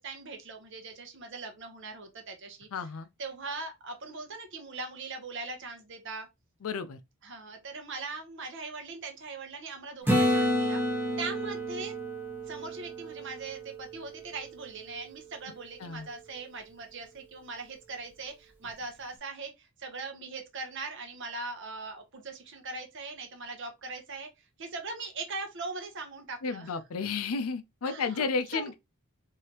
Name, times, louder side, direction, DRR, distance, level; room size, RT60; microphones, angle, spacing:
voice 1, 0.0-2.7 3.2-6.3 7.2-11.9 12.5-24.3 24.6-26.7 27.8-28.2 28.5-28.7, right 3 dB, 55° right, 0.9 m, -40 dB
voice 2, 2.7-3.1 6.6-7.0 15.8-16.1 26.4-28.7, left 5 dB, 75° left, 0.5 m, -32 dB
Acoustic guitar / Strum, 10.1-13.8 18.7-18.8, equal, 10° right, 0.9 m, -29 dB
3.3 x 2.7 x 2.8 m
head